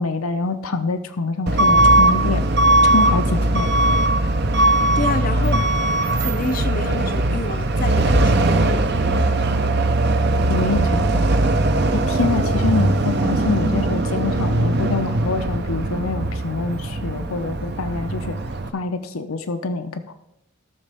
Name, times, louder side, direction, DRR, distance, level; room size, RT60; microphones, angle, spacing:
voice 1, 0.0-2.5 2.9-3.8 10.5-11.3 11.9-18.4 18.7-20.1, left 3 dB, 80° left, 0.7 m, -25 dB
Truck / Alarm, 1.5-18.7, right 2 dB, 50° right, 0.6 m, -19 dB
voice 2, 4.6-5.6 6.2-9.3, left 3 dB, 40° left, 0.6 m, -29 dB
18.0 x 6.5 x 3.5 m
head